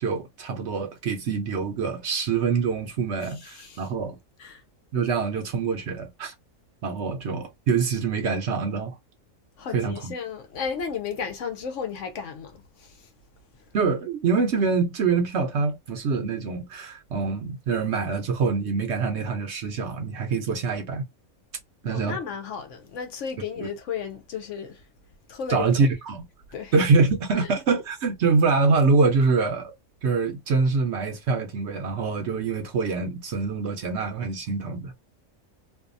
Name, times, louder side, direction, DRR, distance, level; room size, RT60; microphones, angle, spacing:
voice 1, 0.0-4.2 4.9-6.3 6.8-9.0 9.7-10.1 13.7-21.0 21.8-22.2 23.6-23.7 25.5-26.3 26.7-29.7 30.0-34.9, right 4 dB, 60° right, 0.8 m, -25 dB
voice 2, 3.2-3.9 4.4-4.6 9.6-13.1 21.9-24.8 25.3-25.7 26.5-26.7 27.4-27.5, left 6 dB, 70° left, 0.9 m, -34 dB
2.6 x 2.3 x 2.5 m
omnidirectional pair, 1.5 m